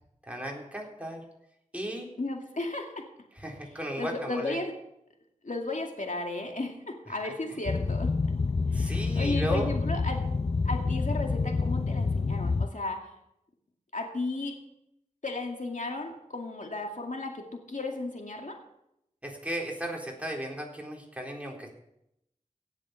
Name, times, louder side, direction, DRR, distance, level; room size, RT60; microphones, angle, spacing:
voice 1, 0.3-1.2 1.7-2.1 3.4-4.6 7.2-7.3 8.7-9.7 19.2-21.7, right 1 dB, 10° right, -1 dB, 3.9 m, -35 dB
voice 2, 2.2-3.0 4.0-4.7 5.4-8.1 8.7-10.3 10.6-13.1 13.9-14.6 15.2-18.5, left 2 dB, 65° left, 2 dB, 2.3 m, -34 dB
Boat Water vehicle, 7.7-12.7, left 4 dB, 50° left, 0.5 m, -28 dB
17.0 x 7.5 x 6.5 m, 0.81 s
wide cardioid pair, 40°, 14 cm